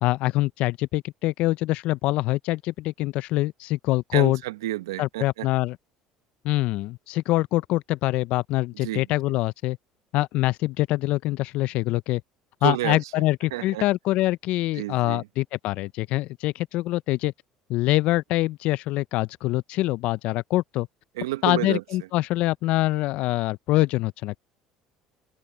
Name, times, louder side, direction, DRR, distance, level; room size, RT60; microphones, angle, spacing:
voice 1, 0.0-4.4 5.0-5.8 6.4-9.8 10.1-12.2 12.6-17.3 17.7-20.9 21.4-24.4, left 18 dB, 65° left, 0.6 m, -24 dB
voice 2, 4.1-5.5 8.7-9.1 12.6-13.2 13.5-13.9 14.7-15.3 21.1-21.8, right 16 dB, 85° right, 1.0 m, -30 dB
hypercardioid pair, 75°, 2 cm